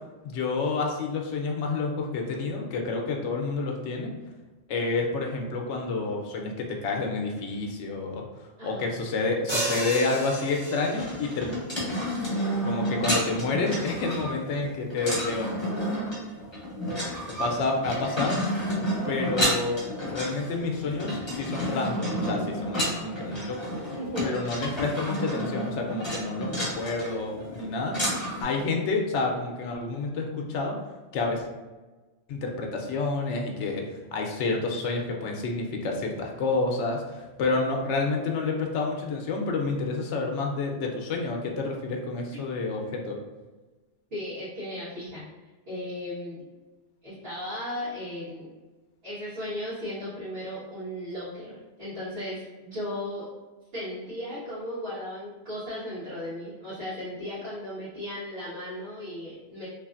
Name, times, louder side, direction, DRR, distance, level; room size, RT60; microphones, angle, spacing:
voice 1, 0.2-4.2 4.7-11.6 12.6-15.5 17.3-18.4 19.0-23.7 24.2-28.0 28.4-30.8 31.1-31.5 32.3-43.2, left 3 dB, 85° left, 1 dB, 0.9 m, -29 dB
voice 2, 8.6-8.9 23.9-24.4 44.1-45.2 45.7-46.4 47.0-48.5 49.0-53.3 53.7-59.7, left 1 dB, 65° right, -13 dB, 1.5 m, -36 dB
sound 1, 9.5-11.3, right 1 dB, 30° right, 0.7 m, -32 dB
sound 2, 11.0-28.4, equal, 25° left, 0.8 m, -30 dB
3.2 x 2.5 x 2.4 m, 1.2 s
omnidirectional pair, 1.2 m